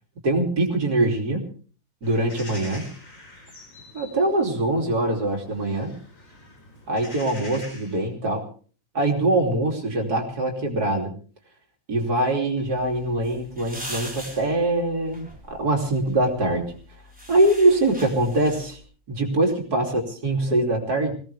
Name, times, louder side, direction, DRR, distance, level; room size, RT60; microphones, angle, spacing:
voice 1, 0.2-1.5 2.0-2.9 3.9-5.9 6.9-8.4 9.0-11.1 11.9-16.7 17.3-18.8 19.1-21.1, right 2 dB, 75° right, 2 dB, 3.6 m, -23 dB
sound 1, 2.0-8.1, left 1 dB, 55° left, 5.0 m, -45 dB
sound 2, 12.6-18.8, equal, 5° right, 4.3 m, -42 dB
22.0 x 17.5 x 3.4 m, 0.41 s
omnidirectional pair, 1.7 m